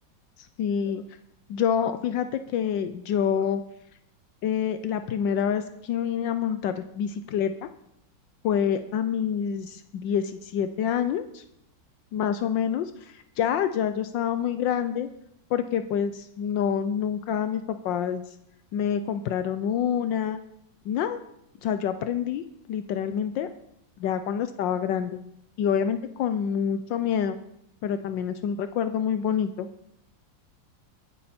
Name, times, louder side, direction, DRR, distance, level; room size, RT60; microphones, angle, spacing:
voice 1, 0.6-1.0 1.5-3.6 4.4-7.5 8.4-11.4 12.1-15.1 15.5-18.2 18.7-20.4 20.8-21.2 21.6-22.4 22.7-23.5 24.0-25.2 25.6-27.4 27.8-29.7, left 8 dB, 75° left, 10 dB, 1.4 m, -27 dB
22.5 x 8.8 x 4.3 m, 0.76 s
omnidirectional pair, 2.0 m